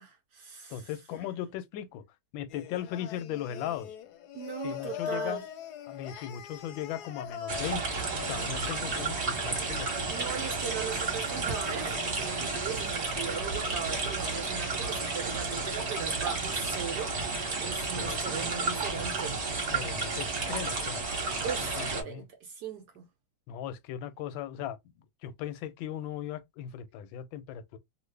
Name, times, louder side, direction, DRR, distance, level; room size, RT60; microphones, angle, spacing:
voice 1, 0.0-0.9 4.3-5.4 10.1-17.2 17.6-19.4 21.4-23.0, right 7 dB, 65° right, 1.2 m, -38 dB
voice 2, 0.7-2.0 2.3-4.0 4.6-5.4 5.9-8.0 8.3-10.1 18.0-18.2 19.7-21.1 21.7-22.2 23.5-24.8 25.2-27.8, left 10 dB, 90° left, 1.3 m, -38 dB
Singing, 2.5-9.1, left 9 dB, 70° left, 1.0 m, -41 dB
sound 1, 7.5-22.0, right 3 dB, 40° right, 1.3 m, -32 dB
3.1 x 2.4 x 3.2 m
omnidirectional pair, 2.0 m